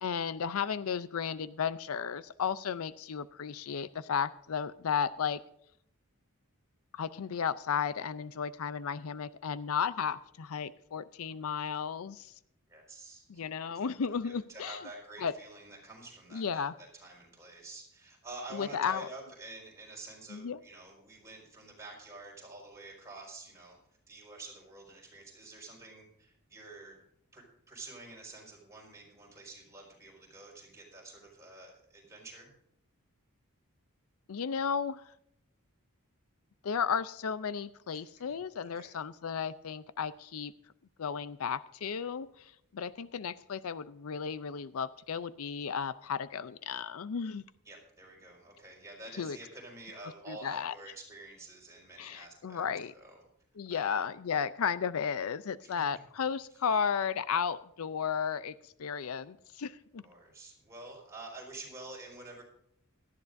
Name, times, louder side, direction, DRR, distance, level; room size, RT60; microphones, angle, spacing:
voice 1, 0.0-5.4 6.9-12.3 13.3-14.8 15.2-15.3 16.3-16.7 18.5-19.1 20.3-20.6 34.3-35.0 36.6-40.5 41.0-47.4 49.2-49.4 50.3-50.7 52.0-52.9 53.6-60.0, left 7 dB, 75° left, 15 dB, 0.5 m, -34 dB
voice 2, 12.7-13.4 13.7-13.8 14.2-23.8 24.1-27.0 27.3-32.5 37.9-38.0 38.7-38.9 47.6-53.2 53.7-53.9 55.6-55.8 60.0-62.4, right 2 dB, 15° right, -2 dB, 4.8 m, -48 dB
18.0 x 13.0 x 2.6 m, 0.74 s
head